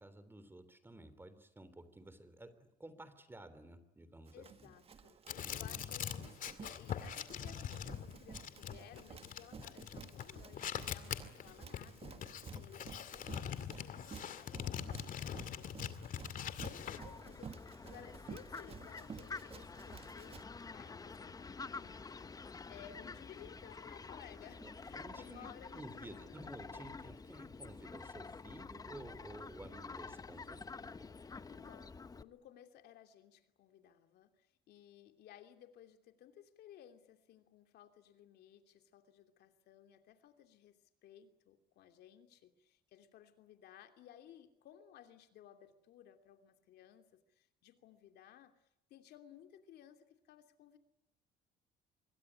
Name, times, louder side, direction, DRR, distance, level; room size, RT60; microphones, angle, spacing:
voice 1, 0.0-4.7 5.4-5.9 24.6-24.7 25.0-31.1, right 1 dB, 15° right, 13 dB, 3.3 m, -53 dB
voice 2, 4.3-5.2 5.5-20.4 20.7-26.9 31.5-48.5 48.9-50.8, left 10 dB, 75° left, 7 dB, 2.9 m, -58 dB
Run, 4.3-20.4, right 6 dB, 35° right, 1.6 m, -53 dB
sound 1, 5.3-17.0, left 8 dB, 55° left, 2.3 m, -43 dB
Fowl, 16.7-32.2, left 4 dB, 20° left, 1.0 m, -49 dB
26.0 x 23.0 x 9.9 m, 0.81 s
cardioid pair, 110°, 17 cm